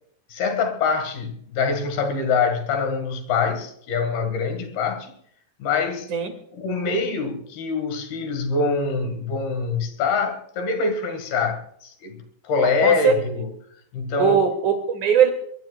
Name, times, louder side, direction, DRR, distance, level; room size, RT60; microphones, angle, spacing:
voice 1, 0.3-5.2 5.6-6.1 6.5-13.5 13.9-14.4, left 4 dB, 60° left, 3.6 m, -24 dB
voice 2, 12.6-13.2 14.2-15.3, right 7 dB, 50° right, 3.3 m, -20 dB
23.0 x 21.0 x 2.4 m
omnidirectional pair, 5.3 m